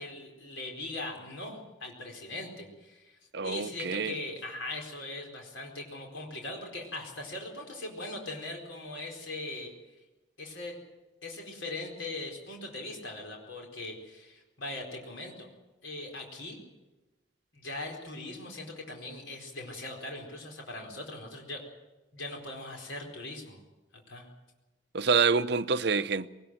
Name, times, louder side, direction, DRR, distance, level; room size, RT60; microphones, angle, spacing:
voice 1, 0.0-9.7 10.4-10.8 11.2-15.5 15.8-16.6 17.5-21.6 22.1-23.6 24.1-24.3, left 2 dB, 80° left, 4.5 m, -40 dB
voice 2, 3.3-4.2 24.9-26.3, right 5 dB, 55° right, 0.6 m, -27 dB
20.0 x 19.5 x 7.8 m
head